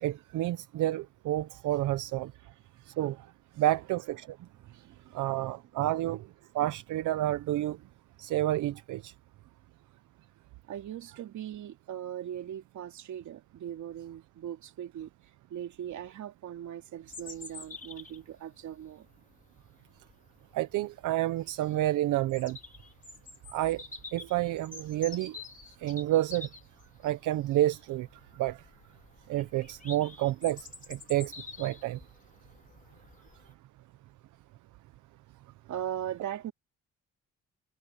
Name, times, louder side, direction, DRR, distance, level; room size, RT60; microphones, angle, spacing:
voice 1, 0.0-2.3 2.9-3.2 3.6-4.4 5.1-6.3 6.5-7.8 8.2-9.1 20.5-22.6 23.5-23.8 24.1-25.4 25.8-26.5 27.0-28.1 28.4-28.6 29.3-31.3 31.6-32.0, right 14 dB, 85° right, 0.9 m, -29 dB
voice 2, 4.6-5.5 10.7-15.1 15.5-19.1 35.7-36.5, right 10 dB, 70° right, 2.8 m, -40 dB
Bird vocalization bird call bird song, 17.1-33.5, left 3 dB, 25° left, 4.9 m, -49 dB
cardioid pair, 90°, 30 cm